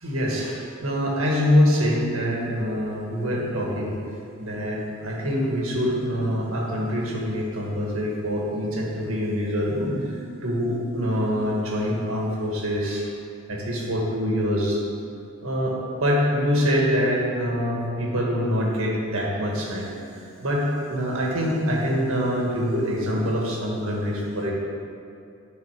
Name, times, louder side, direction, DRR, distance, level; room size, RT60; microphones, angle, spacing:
voice 1, 0.0-3.9 4.4-10.2 10.4-13.1 13.5-14.8 15.4-19.9 20.4-24.5, equal, 75° right, -2 dB, 1.6 m, -25 dB
9.6 x 3.9 x 6.0 m, 2.5 s
head